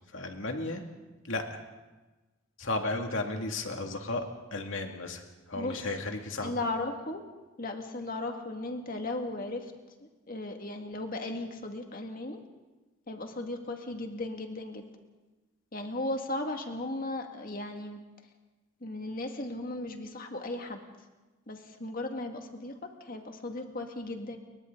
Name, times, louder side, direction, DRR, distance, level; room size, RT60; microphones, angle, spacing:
voice 1, 0.1-0.8 1.3-1.6 2.6-4.2 4.5-6.6, left 2 dB, 65° left, 3 dB, 2.5 m, -34 dB
voice 2, 5.5-6.1 6.4-7.2 7.6-9.7 10.0-12.4 13.1-14.8 15.7-18.0 18.8-20.8 21.5-24.4, left 2 dB, 45° left, 4 dB, 2.2 m, -36 dB
30.0 x 23.0 x 4.0 m, 1.2 s
head